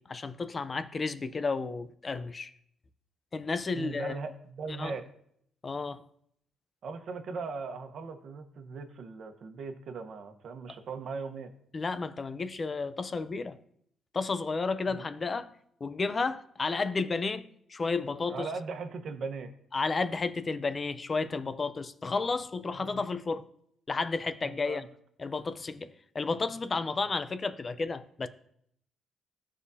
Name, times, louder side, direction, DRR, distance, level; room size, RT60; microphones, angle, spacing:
voice 1, 0.0-2.5 3.3-4.1 4.8-4.9 5.6-6.0 11.7-13.6 14.1-15.5 15.8-18.5 19.7-23.4 23.9-24.8 25.2-28.3, left 4 dB, 35° left, 0.6 m, -32 dB
voice 2, 3.7-5.0 6.8-11.5 14.9-15.0 18.3-19.5 22.7-23.0 24.4-24.9, right 4 dB, 60° right, 1.1 m, -39 dB
14.5 x 5.0 x 2.8 m
cardioid pair, 90°, 0 cm